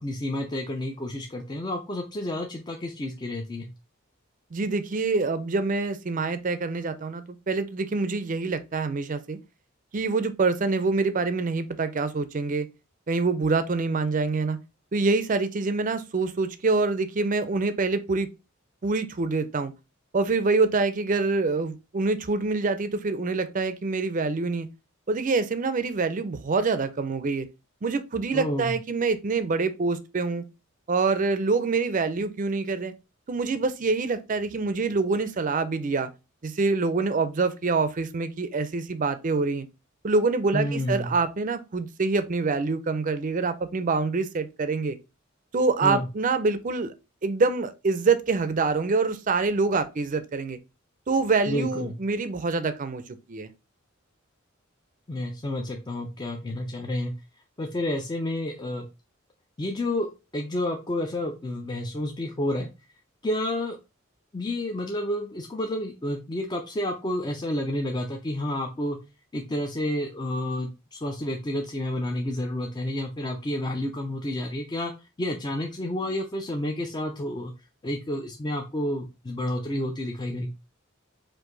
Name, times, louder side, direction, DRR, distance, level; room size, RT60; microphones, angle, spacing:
voice 1, 0.0-3.7 28.3-28.7 40.5-41.1 45.8-46.0 51.5-51.9 55.1-57.1 57.6-58.9 59.6-62.7 63.2-63.8 64.3-69.0 69.3-74.9 75.2-77.5 77.8-80.5, left 1 dB, 20° left, 0.4 m, -30 dB
voice 2, 4.5-9.4 9.9-12.7 13.1-14.6 14.9-18.3 18.8-19.7 20.1-24.7 25.1-27.5 27.8-30.4 30.9-32.9 33.3-36.1 36.4-39.7 40.0-45.0 45.5-46.9 47.2-50.6 51.1-53.5, right 4 dB, 40° right, 0.5 m, -26 dB
4.6 x 2.6 x 3.8 m
head